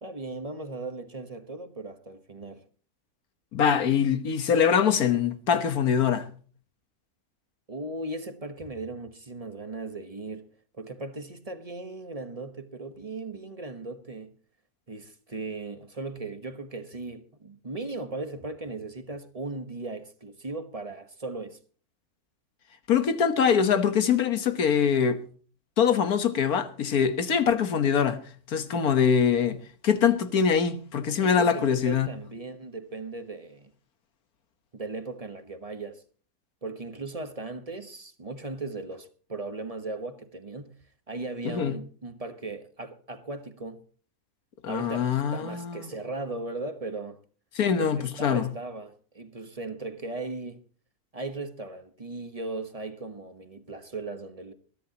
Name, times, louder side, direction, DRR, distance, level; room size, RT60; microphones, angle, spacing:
voice 1, 0.0-2.6 7.7-10.5 10.7-14.3 14.9-21.6 31.2-33.7 34.7-36.0 36.6-40.8 41.1-43.8 44.7-47.2 47.7-50.6 51.1-54.5, right 3 dB, 25° right, 1.2 m, -37 dB
voice 2, 3.5-6.3 22.9-25.2 25.8-28.2 28.5-32.1 41.5-41.8 44.6-45.8 47.6-48.5, left 7 dB, 85° left, 1.8 m, -23 dB
21.5 x 13.5 x 2.9 m
omnidirectional pair, 1.5 m